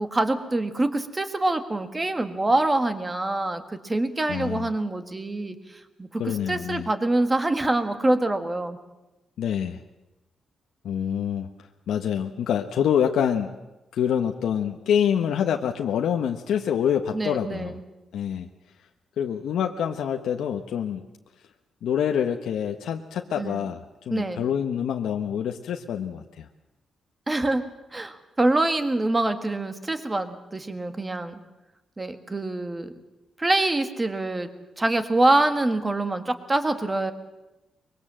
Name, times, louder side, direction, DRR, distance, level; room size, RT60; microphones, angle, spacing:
voice 1, 0.0-5.5 6.0-8.8 17.1-17.8 23.4-23.6 24.1-24.5 27.3-27.6 27.9-31.4 32.0-32.9 33.4-34.5 34.8-37.1, right 2 dB, 15° right, 8 dB, 1.6 m, -25 dB
voice 2, 4.3-4.7 6.2-6.9 9.4-9.8 10.8-11.5 11.9-13.5 13.9-17.8 18.1-18.5 19.2-21.0 21.8-26.5, left 8 dB, 90° left, 3 dB, 1.2 m, -26 dB
24.0 x 23.0 x 7.6 m, 0.99 s
wide cardioid pair, 175°, 0 cm